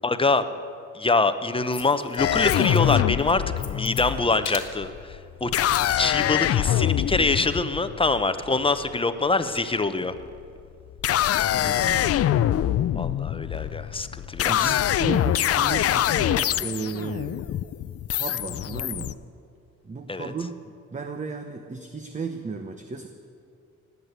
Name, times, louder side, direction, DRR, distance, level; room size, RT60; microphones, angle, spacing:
voice 1, 0.0-0.4 0.9-5.5 6.0-10.1 12.9-14.8 20.1-20.3, left 3 dB, 20° left, 11 dB, 0.8 m, -25 dB
sound 1, 1.7-2.2 2.5-2.9 3.2-4.1 4.4-4.7 5.4-5.9 6.2-6.3, left 10 dB, 65° left, 1.5 m, -36 dB
sound 2, 2.2-8.9 10.0-10.5 10.9-19.1, left 11 dB, 50° left, 0.5 m, -24 dB
voice 2, 11.5-12.5 14.5-17.4 18.2-19.1 19.8-20.5 20.9-23.1, right 4 dB, 25° right, 7 dB, 0.9 m, -34 dB
19.0 x 8.3 x 8.1 m, 2.5 s
cardioid pair, 90°, 30 cm